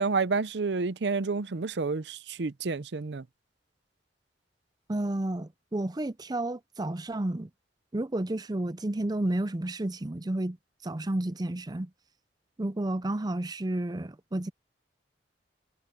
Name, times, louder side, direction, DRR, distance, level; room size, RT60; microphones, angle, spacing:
voice 1, 0.0-3.2, right 4 dB, 65° right, 0.6 m, -29 dB
voice 2, 4.9-7.5 7.9-10.6 10.8-11.9 12.6-14.5, right 1 dB, 20° right, 0.5 m, -31 dB
head